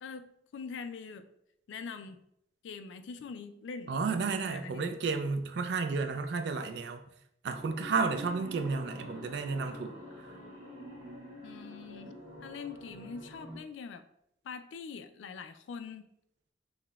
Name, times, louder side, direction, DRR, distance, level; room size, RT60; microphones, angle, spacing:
voice 1, 0.0-1.3 1.7-2.2 2.6-3.9 4.3-5.0 11.4-12.1 12.4-14.0 14.4-16.1, left 5 dB, 85° left, 9 dB, 0.3 m, -43 dB
voice 2, 3.9-7.0 7.4-10.0, right 4 dB, 65° right, 7 dB, 0.3 m, -32 dB
sound 1, 7.5-13.6, equal, 30° right, 1.2 m, -46 dB
5.6 x 2.1 x 2.3 m, 0.76 s
head